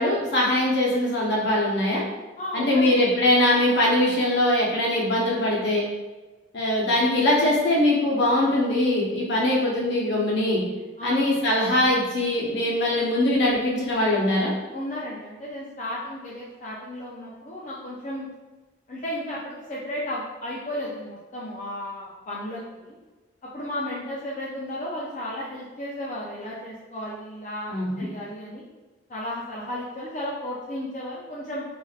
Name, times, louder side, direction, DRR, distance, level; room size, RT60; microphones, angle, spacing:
voice 1, 0.0-2.0 2.5-5.9 6.5-10.6 11.0-14.5 27.7-28.1, left 1 dB, 65° left, -4 dB, 0.8 m, -22 dB
voice 2, 2.4-3.0 11.0-11.2 14.7-18.3 18.9-23.0 23.5-28.6 29.1-31.6, left 1 dB, 40° left, -6 dB, 0.4 m, -34 dB
3.2 x 2.5 x 2.3 m, 1.2 s
head